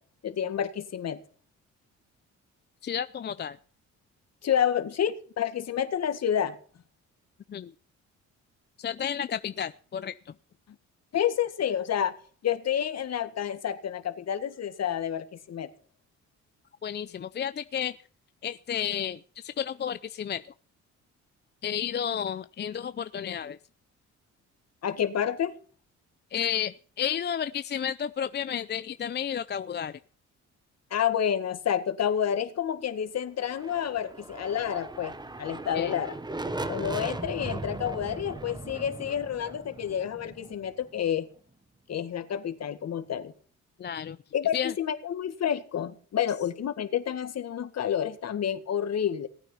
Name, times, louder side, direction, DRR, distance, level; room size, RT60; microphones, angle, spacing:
voice 1, 0.2-1.2 4.4-6.6 11.1-12.1 12.4-15.7 24.8-25.5 30.9-35.1 35.4-36.2 36.7-41.2 41.9-43.3 44.3-49.3, left 9 dB, 60° left, 9 dB, 1.9 m, -29 dB
voice 2, 2.8-3.6 7.5-7.7 8.8-10.3 16.8-18.0 18.4-20.4 21.6-23.6 26.3-30.0 35.7-36.0 43.8-44.2 44.5-44.7, left 9 dB, 35° left, 12 dB, 0.5 m, -32 dB
sound 1, 33.4-41.2, right 2 dB, 15° right, 1.1 m, -38 dB
18.5 x 9.2 x 5.7 m, 0.43 s
cardioid pair, 90°, 30 cm